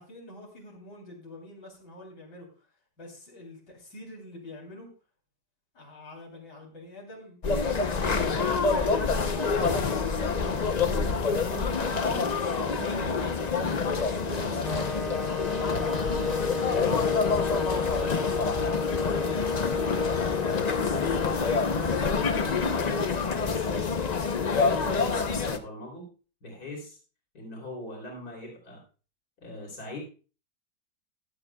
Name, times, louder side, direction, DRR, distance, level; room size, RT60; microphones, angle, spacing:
voice 1, 0.0-2.7 3.0-4.9 5.7-7.4 7.8-13.2 13.6-15.4 15.8-17.3 17.6-19.5, left 1 dB, 80° left, -3 dB, 4.0 m, -45 dB
sound 1, 7.4-25.6, left 4 dB, 45° left, 0.5 m, -27 dB
sound 2, 8.1-8.2 8.5-8.8 9.1-9.9 10.2-10.5 10.9-11.6 11.9-12.3 12.6-13.3 13.6-14.0 14.3-14.9, right 3 dB, 55° right, 2.3 m, -43 dB
sound 3, 14.6-22.6, left 4 dB, ahead, 1.2 m, -33 dB
voice 2, 15.8-16.3 20.3-26.1 26.4-27.0 27.3-28.8 29.4-30.0, left 1 dB, 60° left, -2 dB, 3.8 m, -41 dB
15.5 x 11.5 x 2.3 m, 0.35 s
omnidirectional pair, 1.8 m